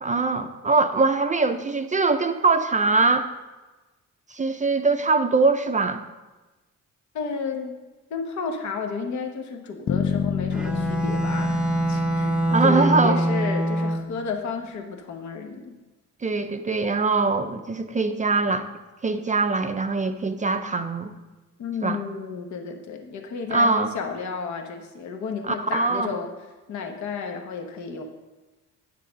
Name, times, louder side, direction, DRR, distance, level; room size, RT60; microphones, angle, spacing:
voice 1, 0.0-3.3 4.3-6.0 12.5-13.2 16.2-18.7 19.0-21.1 21.8-22.0 23.5-23.9 25.5-26.1, right 3 dB, 25° right, 7 dB, 0.5 m, -22 dB
voice 2, 7.1-7.8 8.1-11.6 11.9-12.3 12.6-15.8 21.6-26.3 26.7-28.0, left 5 dB, 70° left, 4 dB, 1.1 m, -32 dB
Bass guitar, 9.9-13.9, left 7 dB, 35° left, 0.4 m, -29 dB
Bowed string instrument, 10.5-14.3, right 1 dB, 5° right, 0.8 m, -24 dB
9.4 x 6.6 x 5.2 m, 1.2 s
cardioid pair, 90°, 30 cm